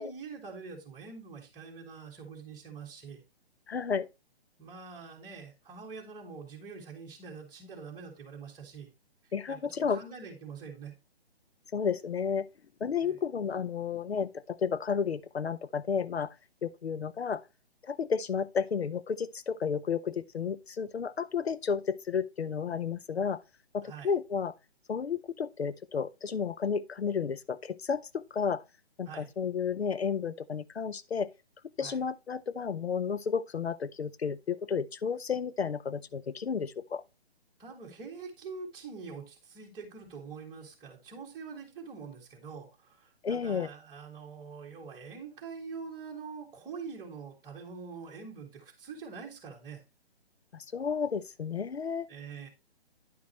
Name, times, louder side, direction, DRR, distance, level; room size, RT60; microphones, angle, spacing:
voice 1, 0.0-3.2 4.6-8.9 9.5-11.0 13.0-13.2 23.8-24.1 29.1-29.3 31.8-32.0 37.6-49.8 52.1-52.5, right 5 dB, 10° right, 2.0 m, -45 dB
voice 2, 3.7-4.1 9.3-10.0 11.7-12.5 12.8-16.3 16.6-17.4 17.8-23.4 23.7-24.5 24.9-28.6 29.0-31.3 31.8-37.0 43.2-43.7 50.5-52.1, left 6 dB, 75° left, 0.6 m, -32 dB
10.5 x 6.1 x 3.0 m
figure-of-eight pair, 135°, 32 cm